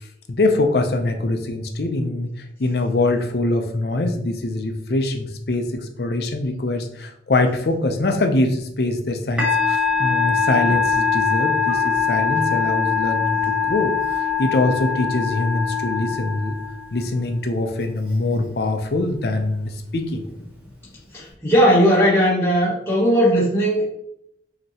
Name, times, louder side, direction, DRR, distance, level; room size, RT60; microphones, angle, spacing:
voice 1, 0.3-2.3 2.6-16.5 16.9-20.2, left 2 dB, 60° left, 5 dB, 0.6 m, -23 dB
Musical instrument, 9.4-17.0, left 6 dB, 5° right, 1.2 m, -22 dB
voice 2, 21.1-23.9, equal, 15° left, -7 dB, 1.1 m, -17 dB
5.3 x 2.9 x 2.9 m, 0.76 s
head